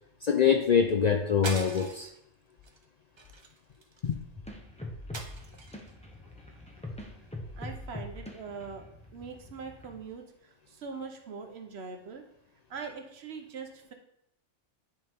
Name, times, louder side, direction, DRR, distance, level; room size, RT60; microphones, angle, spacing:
voice 1, 0.2-2.1 4.0-4.2, left 7 dB, 60° left, 4 dB, 0.4 m, -24 dB
sound 1, 1.4-2.2 2.6-2.8 3.2-4.1 5.1-5.9, right 3 dB, 40° right, 0.4 m, -41 dB
sound 2, 4.4-10.0, left 1 dB, 5° left, 0.8 m, -43 dB
voice 2, 7.6-8.8 9.1-12.2 12.7-13.9, right 5 dB, 65° right, 5 dB, 1.0 m, -42 dB
10.0 x 3.7 x 3.5 m, 0.74 s
omnidirectional pair, 1.2 m